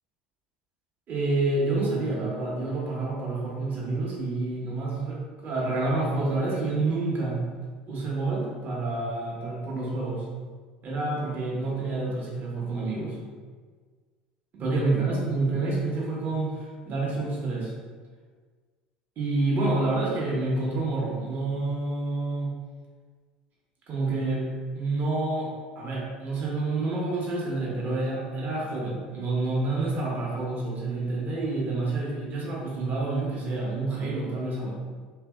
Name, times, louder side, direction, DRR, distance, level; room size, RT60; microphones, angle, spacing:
voice 1, 1.1-7.4 7.9-10.2 10.8-13.2 14.5-17.7 19.2-22.5 23.9-24.5 24.7-34.7, right 2 dB, 40° right, -4 dB, 0.9 m, -28 dB
2.7 x 2.6 x 2.3 m, 1.5 s
figure-of-eight pair, 70°, 5 cm